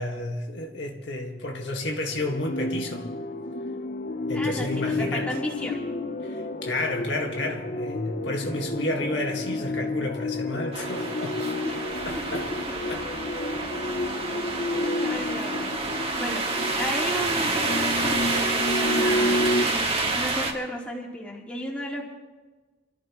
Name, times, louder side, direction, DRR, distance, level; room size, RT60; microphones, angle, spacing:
voice 1, 0.0-3.1 4.3-5.3 6.2-11.4 12.1-12.5 12.9-13.1 16.1-16.4, left 1 dB, 70° left, 1 dB, 1.8 m, -31 dB
sound 1, 2.1-19.7, left 1 dB, 45° left, 0.7 m, -30 dB
voice 2, 4.3-5.8 11.6-12.6 14.3-16.4 16.7-22.0, equal, 5° left, -4 dB, 3.5 m, -34 dB
sound 2, 10.7-20.5, right 3 dB, 35° right, 1.9 m, -28 dB
27.0 x 15.0 x 3.1 m, 1.3 s
head